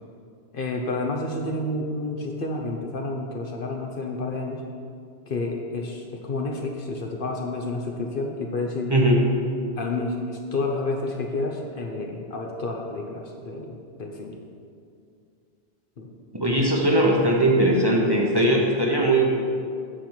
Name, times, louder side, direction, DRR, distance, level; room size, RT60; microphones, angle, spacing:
voice 1, 0.5-4.6 5.3-8.9 9.8-14.4 16.0-16.1, left 2 dB, 55° left, 1 dB, 0.9 m, -30 dB
voice 2, 8.9-9.3 16.3-19.4, right 1 dB, 25° right, -2 dB, 1.0 m, -20 dB
8.9 x 4.4 x 7.4 m, 2.3 s
omnidirectional pair, 1.1 m